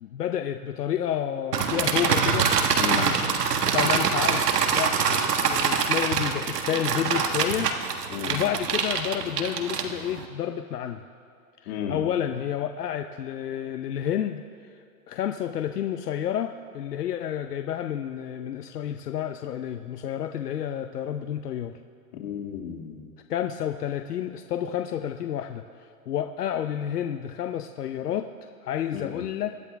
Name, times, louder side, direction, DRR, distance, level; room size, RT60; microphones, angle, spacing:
voice 1, 0.0-2.5 3.7-7.7 8.0-11.0 11.6-14.4 15.1-21.8 23.3-25.6 26.1-28.3 28.6-29.6, left 10 dB, 80° left, 7 dB, 0.8 m, -30 dB
sound 1, 1.5-10.2, right 6 dB, 85° right, 1.6 m, -25 dB
voice 2, 2.8-3.1 8.1-8.4 11.7-12.0 22.1-23.0 28.9-29.2, left 9 dB, 45° left, 0 dB, 2.4 m, -33 dB
25.0 x 10.0 x 3.5 m, 2.5 s
hypercardioid pair, 160°, 46 cm